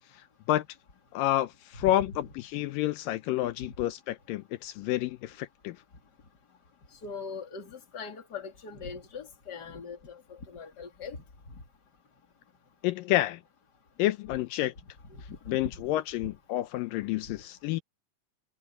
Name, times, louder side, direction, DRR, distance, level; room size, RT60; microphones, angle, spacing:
voice 1, 1.1-2.1 2.4-5.8 12.8-13.4 14.0-14.7 15.5-17.8, left 14 dB, 80° left, 2.4 m, -29 dB
voice 2, 7.0-11.2 15.1-15.4, left 5 dB, 30° left, 2.7 m, -41 dB
omnidirectional pair, 3.9 m